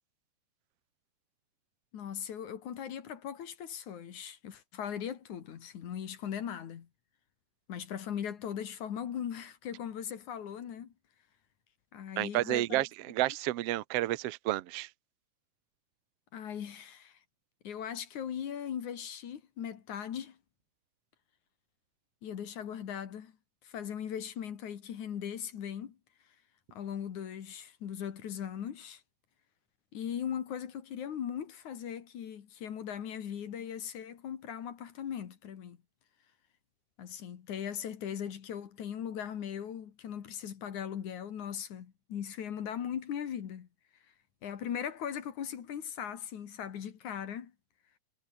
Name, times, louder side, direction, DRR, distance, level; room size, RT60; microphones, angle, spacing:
voice 1, 1.9-6.9 7.7-10.9 11.9-12.9 16.3-17.2 17.6-20.4 22.2-23.3 23.6-26.0 26.7-29.0 29.9-35.8 37.0-43.7 44.4-47.5, left 9 dB, 60° left, 3.1 m, -39 dB
voice 2, 12.2-14.9, right 16 dB, 90° right, 1.3 m, -31 dB
omnidirectional pair, 4.1 m